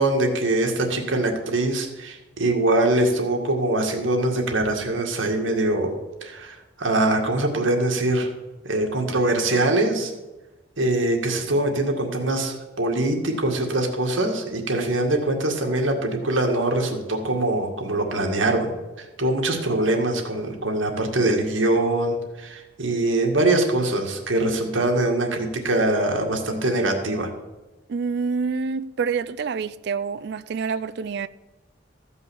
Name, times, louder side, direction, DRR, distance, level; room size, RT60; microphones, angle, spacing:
voice 1, 0.0-5.9 6.2-8.3 8.6-10.1 10.8-18.7 19.0-27.3, right 2 dB, 80° right, 1.9 m, -23 dB
voice 2, 27.9-31.3, right 5 dB, 55° right, 0.4 m, -27 dB
14.5 x 5.5 x 7.0 m
head